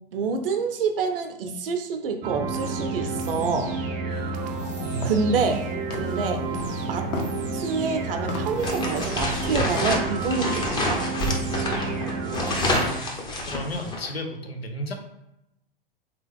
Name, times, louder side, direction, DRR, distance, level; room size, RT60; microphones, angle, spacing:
voice 1, 0.1-3.7 5.0-6.4 6.9-7.1 7.6-11.1, right 4 dB, 65° right, 6 dB, 0.7 m, -27 dB
sound 1, 2.2-13.0, right 3 dB, 25° right, 0.5 m, -30 dB
voice 2, 4.1-4.4 4.8-5.5 13.5-14.9, equal, 90° left, 4 dB, 0.8 m, -33 dB
sound 2, 4.6-10.0, left 4 dB, 50° left, 0.9 m, -38 dB
sound 3, 8.6-14.1, left 1 dB, 15° left, 0.6 m, -28 dB
3.5 x 3.0 x 3.4 m, 0.85 s
figure-of-eight pair, 110°, 30 cm